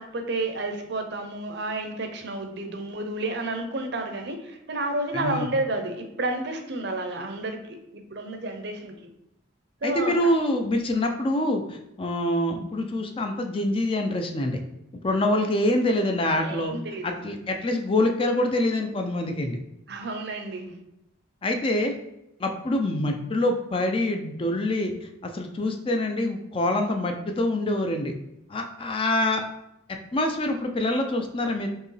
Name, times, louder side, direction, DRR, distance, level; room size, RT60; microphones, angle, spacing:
voice 1, 0.0-7.6 7.9-8.9 9.8-10.3 11.0-11.1 15.1-15.4 16.4-17.2 19.9-20.8, right 2 dB, 55° right, 5 dB, 0.6 m, -31 dB
voice 2, 5.1-5.5 9.8-14.6 15.0-16.7 17.0-19.6 21.4-21.9 22.4-28.1 28.5-29.4 30.1-31.7, left 1 dB, 25° left, 4 dB, 0.4 m, -25 dB
4.5 x 2.9 x 3.2 m, 0.83 s
head